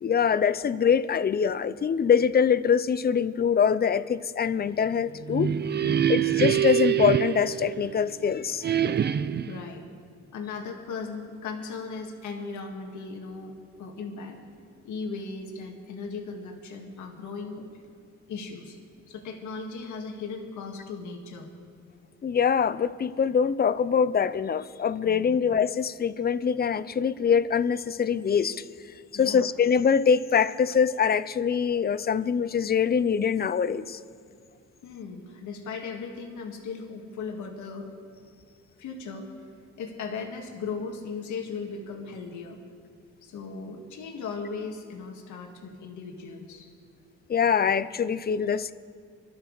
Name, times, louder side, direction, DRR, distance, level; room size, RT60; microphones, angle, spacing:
voice 1, 0.0-5.5 6.1-8.8 22.2-28.6 29.1-34.0 47.3-48.7, left 7 dB, 30° left, 15 dB, 0.6 m, -24 dB
sound 1, 5.1-8.2 8.6-9.6, right 10 dB, 35° right, 0.5 m, -25 dB
voice 2, 5.8-6.3 9.0-9.1 9.5-9.8 10.3-14.4 14.8-17.7 18.3-18.8 19.1-21.5 25.0-25.5 29.1-29.5 34.8-37.9 38.8-39.3 39.8-42.6 43.2-46.7, left 4 dB, 75° left, 1 dB, 1.8 m, -37 dB
25.5 x 12.0 x 4.0 m, 2.2 s
cardioid pair, 90°, 30 cm